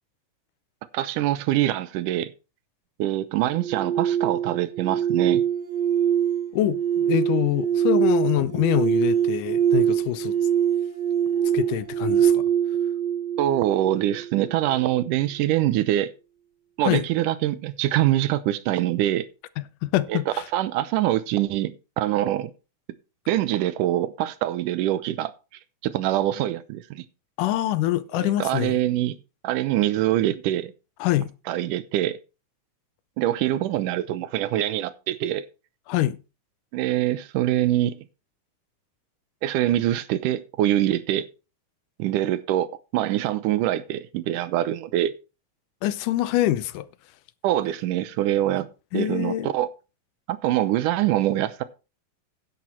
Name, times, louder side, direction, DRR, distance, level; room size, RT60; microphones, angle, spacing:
voice 1, 0.9-2.3 3.0-5.4 13.4-16.1 16.8-19.3 20.1-20.2 20.5-22.5 23.3-25.3 25.8-27.0 28.2-29.1 29.4-30.7 31.5-32.2 33.2-35.5 36.7-38.0 39.4-41.3 42.0-45.1 47.4-48.7 48.9-49.7 50.3-51.6, right 13 dB, 85° right, 2.3 m, -24 dB
sound 1, 3.5-14.5, right 9 dB, 45° right, 1.3 m, -24 dB
voice 2, 6.5-10.4 11.5-12.4 16.8-17.0 19.6-20.5 27.4-28.8 31.0-31.3 35.9-36.2 45.8-46.9 48.9-49.5, left 14 dB, 85° left, 2.3 m, -25 dB
10.5 x 8.7 x 4.4 m
omnidirectional pair, 3.6 m